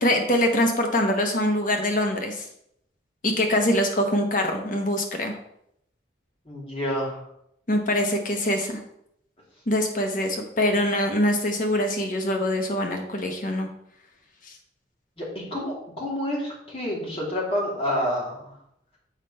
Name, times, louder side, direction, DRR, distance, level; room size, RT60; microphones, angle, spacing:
voice 1, 0.0-2.5 3.2-5.3 7.7-8.8 9.7-13.7 14.5-14.6, left 1 dB, 50° left, 4 dB, 1.0 m, -24 dB
voice 2, 6.5-7.2 15.2-18.5, equal, 35° left, -3 dB, 2.8 m, -29 dB
7.4 x 5.0 x 5.5 m, 0.74 s
head